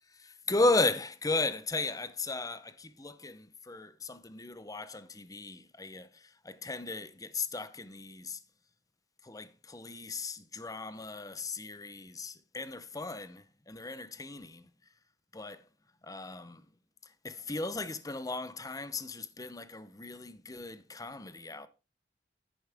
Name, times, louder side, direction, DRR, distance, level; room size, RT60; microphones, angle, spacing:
voice 1, 0.1-8.4 9.2-14.7 15.3-15.6 16.0-16.6 17.2-21.7, left 2 dB, 20° left, 0.8 m, -35 dB
10.5 x 9.3 x 3.6 m
head